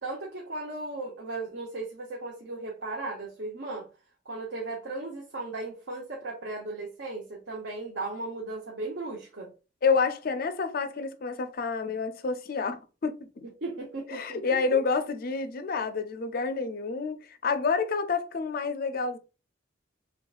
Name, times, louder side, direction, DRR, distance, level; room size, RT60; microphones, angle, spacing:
voice 1, 0.0-3.9 4.2-9.5 13.6-14.4 14.7-14.8, right 2 dB, 60° right, 0.8 m, -36 dB
voice 2, 9.8-13.5 14.1-19.2, left 4 dB, 45° left, 0.4 m, -29 dB
4.6 x 3.4 x 2.4 m
head